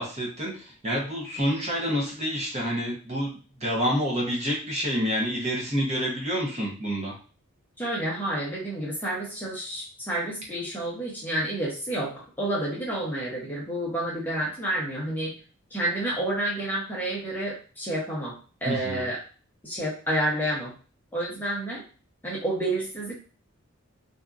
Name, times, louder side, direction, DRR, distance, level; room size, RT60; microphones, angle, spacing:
voice 1, 0.0-7.2 18.6-19.1, equal, 30° right, -3 dB, 0.8 m, -28 dB
voice 2, 7.8-15.3 15.7-19.2 19.6-20.7 21.1-21.8 22.2-23.1, right 1 dB, 10° left, -6 dB, 0.8 m, -29 dB
2.7 x 2.5 x 2.4 m, 0.37 s
head